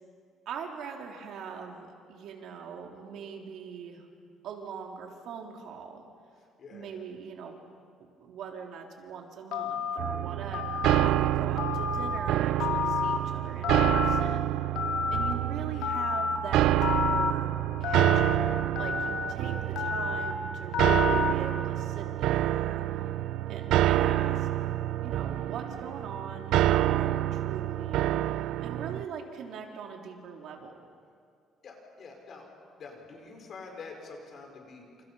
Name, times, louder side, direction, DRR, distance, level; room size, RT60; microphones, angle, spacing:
voice 1, 0.5-4.1 4.4-6.0 6.7-7.5 8.0-14.6 15.1-17.5 17.8-18.4 18.7-22.8 23.5-24.5 25.0-28.1 28.6-30.7, right 6 dB, 65° right, 1 dB, 3.5 m, -41 dB
voice 2, 6.6-7.0 31.6-32.5 32.8-35.0, left 4 dB, 45° left, 2 dB, 4.9 m, -46 dB
Telephone, 9.5-10.0 10.5-11.1 11.6-12.2 12.6-13.2 13.6-14.2 14.8-15.3 15.8-16.4 16.8-17.3 17.8-18.4 18.8-19.3 19.8-20.3 20.7-21.3, left 6 dB, 85° left, 2.3 m, -30 dB
sound 1, 10.0-29.0, right 13 dB, 80° right, 0.6 m, -28 dB
28.5 x 28.5 x 5.7 m, 2.2 s
cardioid pair, 155°, 0 cm